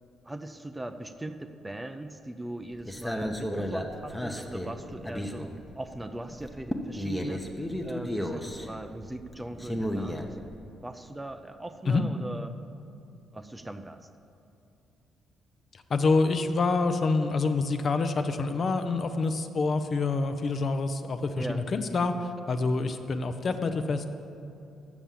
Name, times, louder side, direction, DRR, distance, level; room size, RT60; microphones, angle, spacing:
voice 1, 0.2-7.4 7.8-10.4 10.8-12.5 13.3-14.0 21.3-21.6, right 1 dB, 15° right, 8 dB, 0.5 m, -40 dB
sound 1, 2.7-6.0 6.3-10.6, equal, 5° left, 0.8 m, -34 dB
voice 2, 15.7-24.1, left 3 dB, 45° left, 8 dB, 0.6 m, -27 dB
7.1 x 6.8 x 7.5 m, 2.7 s
cardioid pair, 90°, 0 cm